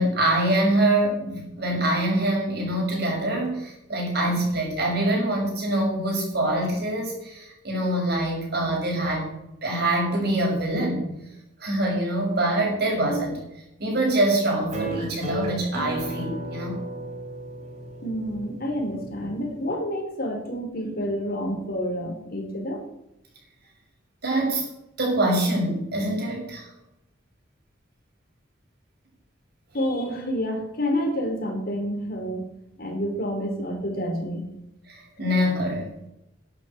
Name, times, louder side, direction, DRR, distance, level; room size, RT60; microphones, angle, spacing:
voice 1, 0.0-9.3 9.6-11.1 11.6-13.4 13.8-16.8 24.2-24.6 25.0-26.7 34.9-35.9, right 1 dB, 60° right, -1 dB, 6.5 m, -24 dB
sound 1, 14.7-19.7, right 1 dB, 40° right, 3.3 m, -34 dB
voice 2, 18.0-22.8 29.7-32.4 32.8-34.4, equal, 55° left, 3 dB, 3.6 m, -28 dB
11.5 x 8.6 x 8.5 m, 0.85 s
head